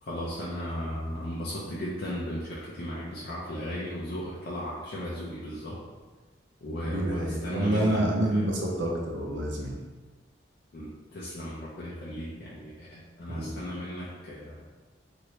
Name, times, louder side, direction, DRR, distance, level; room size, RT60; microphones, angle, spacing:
voice 1, 0.0-5.8 6.6-8.0 8.3-8.5 10.7-14.7, equal, 55° left, -7 dB, 0.5 m, -36 dB
voice 2, 6.8-9.8 13.3-13.5, right 1 dB, 85° right, -1 dB, 0.7 m, -28 dB
3.1 x 2.6 x 2.9 m, 1.3 s
head